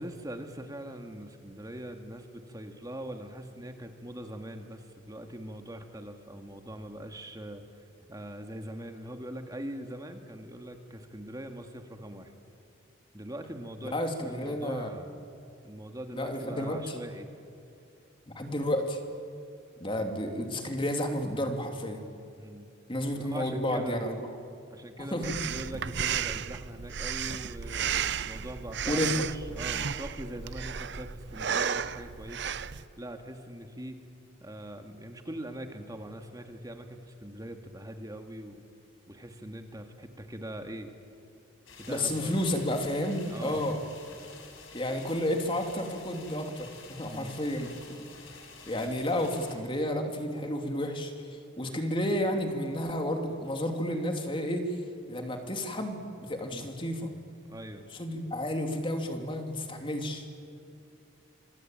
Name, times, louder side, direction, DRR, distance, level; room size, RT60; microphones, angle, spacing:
voice 1, 0.0-7.6 8.1-12.3 13.1-15.1 15.6-17.3 22.4-22.7 23.1-24.0 24.7-27.9 28.2-32.5 33.0-34.0 34.4-38.7 39.1-40.9 41.8-42.6 43.3-43.7 47.1-47.4 56.5-56.7 57.5-57.9, right 1 dB, 20° right, 5 dB, 1.9 m, -42 dB
voice 2, 13.8-14.9 16.1-16.9 18.3-19.0 19.8-22.0 22.9-24.2 25.1-25.3 28.9-29.2 41.9-43.8 44.7-47.7 48.7-54.8 55.1-57.1 57.9-60.2, left 1 dB, 25° left, 4 dB, 2.8 m, -31 dB
Breathing, 25.2-32.8, right 8 dB, 60° right, 0.7 m, -33 dB
sound 1, 41.7-49.6, left 4 dB, 85° left, 5.3 m, -49 dB
26.5 x 24.0 x 9.1 m, 2.6 s
head